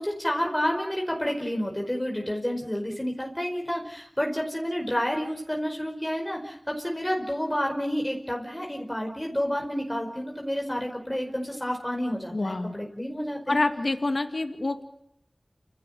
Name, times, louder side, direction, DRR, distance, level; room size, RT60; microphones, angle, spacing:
voice 1, 0.0-13.6, equal, 15° left, 1 dB, 5.0 m, -30 dB
voice 2, 12.3-12.7 13.5-14.9, left 2 dB, 65° left, 7 dB, 2.2 m, -27 dB
28.5 x 16.5 x 9.1 m, 0.78 s
wide cardioid pair, 45°, 0 cm